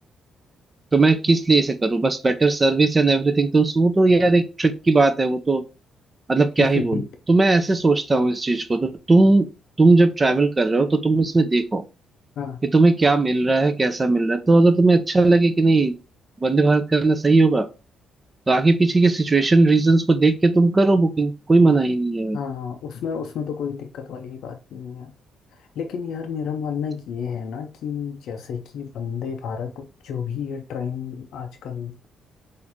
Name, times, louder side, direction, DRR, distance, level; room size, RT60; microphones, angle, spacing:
voice 1, 0.9-5.6 6.3-9.5 9.8-11.8 12.7-15.9 16.4-17.7 18.5-22.4, right 3 dB, 25° right, 0.5 m, -18 dB
voice 2, 6.6-7.0 12.4-12.6 22.3-25.1 25.6-32.1, left 7 dB, 75° left, 0.4 m, -31 dB
4.1 x 2.5 x 2.9 m
cardioid pair, 90°, 0 cm